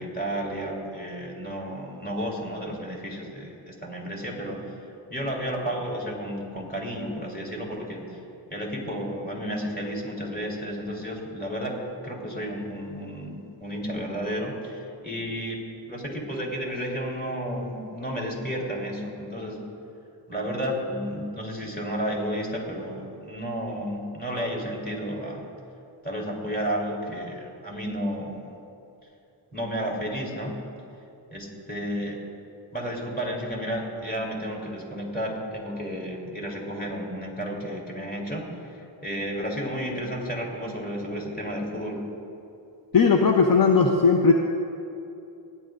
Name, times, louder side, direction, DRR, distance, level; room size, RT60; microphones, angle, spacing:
voice 1, 0.0-4.7 5.1-8.2 8.5-11.8 12.0-15.6 15.9-19.6 20.3-25.5 26.0-28.6 29.5-30.5 31.3-32.2 32.7-38.5 39.0-42.0, equal, 20° left, -3 dB, 3.5 m, -32 dB
voice 2, 42.9-44.3, left 5 dB, 50° left, 1 dB, 0.9 m, -18 dB
29.5 x 11.0 x 2.6 m, 2.7 s
wide cardioid pair, 105°, 44 cm